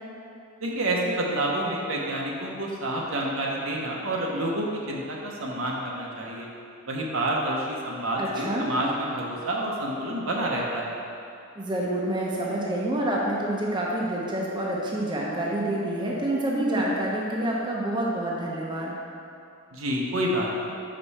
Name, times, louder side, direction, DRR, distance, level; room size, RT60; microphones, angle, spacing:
voice 1, 0.6-6.5 6.9-11.0 19.7-20.6, right 1 dB, 70° right, -2 dB, 0.9 m, -28 dB
voice 2, 8.2-8.7 11.6-19.0, right 1 dB, 20° right, -4 dB, 0.7 m, -27 dB
5.9 x 5.3 x 4.2 m, 2.6 s
head